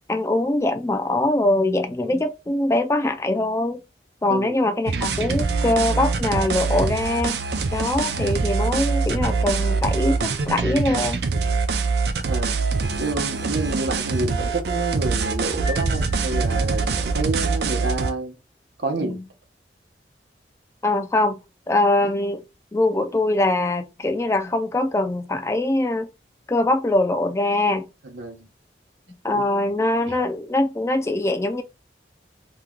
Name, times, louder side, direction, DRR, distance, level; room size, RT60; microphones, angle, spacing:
voice 1, 0.1-3.8 4.2-7.4 7.7-11.2 19.0-19.2 20.8-21.4 21.7-22.4 22.7-26.1 26.5-27.8 29.2-31.6, left 2 dB, 15° left, 0.3 m, -22 dB
voice 2, 4.3-4.6 8.1-8.3 12.3-12.5 12.9-18.3 18.8-19.2 28.0-28.5 29.3-29.4 30.1-30.2, right 2 dB, 80° right, 0.8 m, -29 dB
sound 1, 4.9-18.1, right 4 dB, 65° right, 0.5 m, -24 dB
sound 2, 15.7-17.1, left 4 dB, 35° left, 0.8 m, -40 dB
3.0 x 2.2 x 3.6 m
head